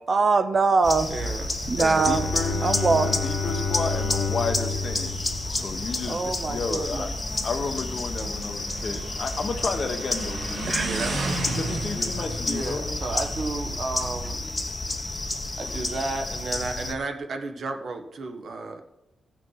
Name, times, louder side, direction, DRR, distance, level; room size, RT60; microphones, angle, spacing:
voice 1, 0.1-1.1 1.7-2.3 2.6-3.1 6.1-7.1 10.7-10.9, right 4 dB, 40° right, 9 dB, 0.7 m, -22 dB
sound 1, 0.8-16.9, left 2 dB, 20° left, 1.1 m, -31 dB
voice 2, 1.1-1.5 1.9-2.4 10.8-11.4 12.4-14.4 15.6-18.8, right 3 dB, 55° right, 5 dB, 1.3 m, -33 dB
Motorcycle, 1.2-14.1, right 3 dB, 75° right, 2.6 m, -37 dB
Bowed string instrument, 1.8-6.3, left 4 dB, 85° left, 1.0 m, -30 dB
voice 3, 1.8-2.6 2.9-7.1 7.4-13.0, left 4 dB, 50° left, 6 dB, 1.2 m, -32 dB
16.0 x 6.0 x 4.8 m, 0.97 s
wide cardioid pair, 135°, 0 cm